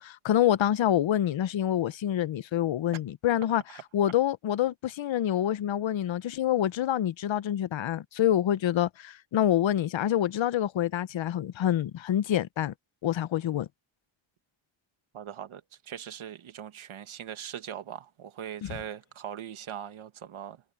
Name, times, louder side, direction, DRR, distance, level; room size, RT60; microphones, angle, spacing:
voice 1, 0.0-3.6 3.9-12.7 13.0-13.7 18.6-18.8, left 11 dB, 70° left, 0.8 m, -27 dB
voice 2, 3.5-3.8 15.1-20.6, right 9 dB, 85° right, 1.6 m, -41 dB
cardioid pair, 85°, 47 cm